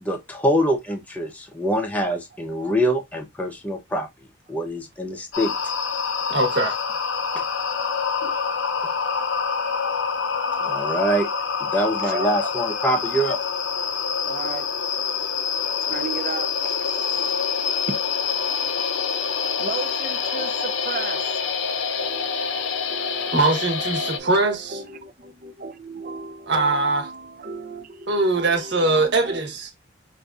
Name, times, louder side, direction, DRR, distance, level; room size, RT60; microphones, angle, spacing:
voice 1, 0.0-4.1 4.5-5.5 7.3-7.4 10.6-11.3 11.6-13.4, equal, 10° left, 0.6 m, -24 dB
sound 1, 5.3-24.2, left 6 dB, 70° left, 0.5 m, -26 dB
voice 2, 6.3-6.8 23.3-24.8 26.5-27.1 28.1-29.8, right 2 dB, 60° right, 1.1 m, -21 dB
voice 3, 12.0-12.5 14.2-14.7 15.9-17.3 17.9-18.0 19.6-21.2 22.0-29.4, right 4 dB, 45° right, 0.4 m, -36 dB
5.0 x 2.6 x 2.3 m
head